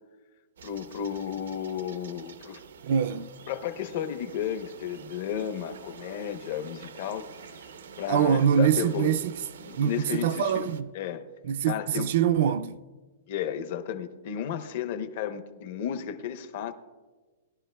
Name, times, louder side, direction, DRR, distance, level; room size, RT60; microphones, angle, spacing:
voice 1, 0.6-2.6 3.5-7.3 8.0-9.1 9.7-10.7 10.9-11.2 11.7-12.1 13.3-16.7, left 9 dB, 40° left, 0.8 m, -33 dB
sound 1, 0.6-10.8, right 6 dB, 90° right, 0.7 m, -48 dB
voice 2, 2.8-3.3 8.1-9.4 9.7-10.9 11.5-12.8, right 8 dB, 45° right, 0.4 m, -24 dB
20.0 x 12.0 x 2.3 m
hypercardioid pair, 180°, 0 cm